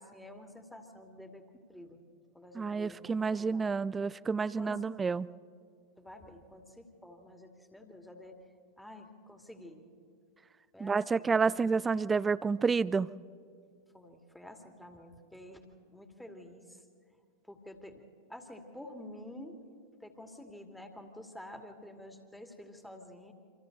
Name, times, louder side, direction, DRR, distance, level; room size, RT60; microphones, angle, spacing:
voice 1, 0.0-1.4 1.7-2.0 2.3-3.1 3.4-3.7 4.6-4.9 6.0-8.4 8.8-9.9 10.7-11.7 13.9-16.8 17.4-18.0 18.3-19.6 20.0-23.3, left 1 dB, 5° left, 4 dB, 2.4 m, -49 dB
voice 2, 2.5-5.3 10.8-13.1, right 5 dB, 15° right, 20 dB, 0.5 m, -29 dB
28.0 x 26.0 x 4.0 m, 2.2 s
figure-of-eight pair, 90°, 0 cm